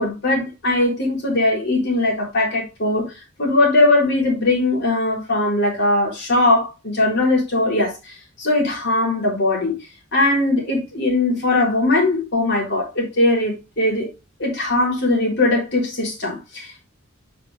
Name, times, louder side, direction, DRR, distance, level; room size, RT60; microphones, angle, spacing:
voice 1, 0.0-3.0 3.4-9.8 10.1-14.1 14.4-16.8, left 2 dB, 55° left, 3.7 m, -20 dB
8.0 x 5.1 x 3.3 m
head